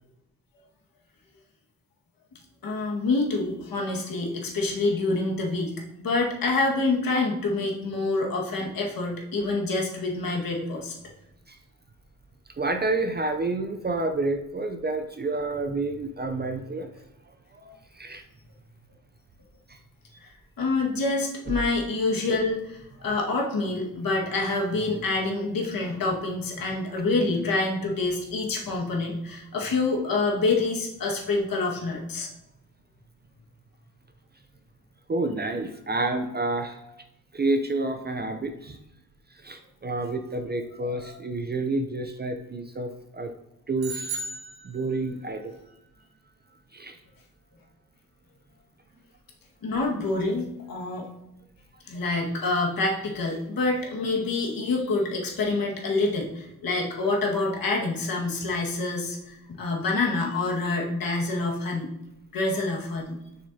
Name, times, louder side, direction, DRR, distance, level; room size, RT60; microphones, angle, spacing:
voice 1, 2.6-11.0 20.6-32.3 40.8-41.1 49.6-51.1 51.8-61.9 62.3-63.2, left 3 dB, 70° left, -1 dB, 1.8 m, -27 dB
voice 2, 12.6-16.9 17.5-18.2 19.7-19.8 35.1-36.8 37.3-38.8 39.4-43.3 43.7-44.2 44.6-45.6 46.7-47.0, right 2 dB, 30° right, 6 dB, 0.5 m, -29 dB
sound 1, 43.8-45.3, right 3 dB, 85° right, 1.9 m, -35 dB
6.7 x 6.3 x 2.8 m, 0.90 s
cardioid pair, 105°, 36 cm